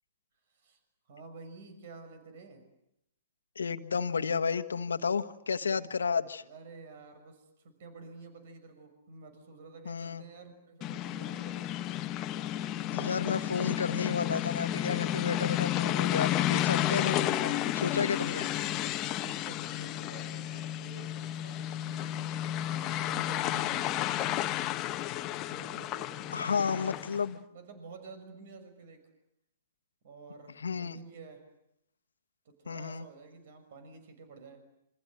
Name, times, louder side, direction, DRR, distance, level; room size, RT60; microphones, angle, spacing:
voice 1, 0.5-0.8 1.1-2.6 5.6-5.9 6.4-12.0 19.0-24.5 25.5-27.0 27.5-29.0 30.0-31.5 32.4-34.6, right 3 dB, 55° right, 9 dB, 6.2 m, -50 dB
voice 2, 3.5-6.4 9.8-10.2 12.9-18.5 26.3-27.4 30.6-31.0 32.7-33.0, left 5 dB, 75° left, 11 dB, 1.4 m, -32 dB
sound 1, 10.8-27.3, left 13 dB, 30° left, 1.2 m, -32 dB
28.0 x 25.5 x 7.8 m, 0.80 s
figure-of-eight pair, 115°, 0 cm